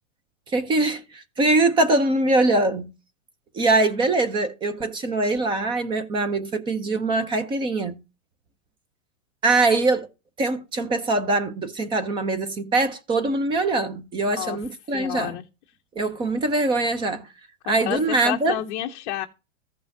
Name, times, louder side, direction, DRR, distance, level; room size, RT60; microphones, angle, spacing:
voice 1, 0.5-2.9 3.5-8.0 9.4-10.1 10.4-15.3 16.0-17.3 17.7-18.6, right 2 dB, 15° right, 0.5 m, -23 dB
voice 2, 14.2-14.6 14.9-15.5 17.7-19.3, left 13 dB, 40° left, 0.6 m, -30 dB
15.0 x 5.5 x 2.6 m
hypercardioid pair, 145°, 39 cm